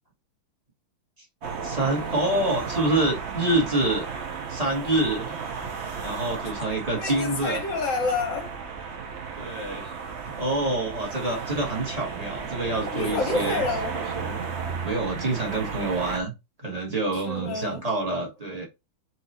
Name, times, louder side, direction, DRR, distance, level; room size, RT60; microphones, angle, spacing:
sound 1, 1.4-16.2, right 5 dB, 85° right, 0.5 m, -34 dB
voice 1, 1.6-4.0 4.5-5.4 6.0-7.6 9.4-9.9 10.2-13.6 13.9-14.4 14.8-16.3 16.6-18.6, right 2 dB, 20° right, 1.1 m, -27 dB
voice 2, 7.0-8.5 12.9-14.0 17.1-17.8, left 3 dB, 50° left, 1.0 m, -28 dB
4.2 x 2.8 x 4.2 m
omnidirectional pair, 2.3 m